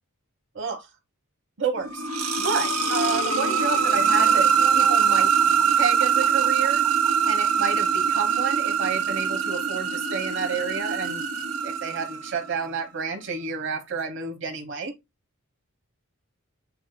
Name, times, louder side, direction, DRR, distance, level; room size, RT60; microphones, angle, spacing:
voice 1, 0.5-0.9 1.6-2.0 2.4-4.5 4.7-5.3 5.7-6.8 7.3-11.2 11.6-14.9, right 5 dB, 60° right, 1.1 m, -30 dB
sound 1, 1.7-12.5, right 6 dB, 80° right, 0.9 m, -23 dB
8.0 x 2.7 x 2.2 m
head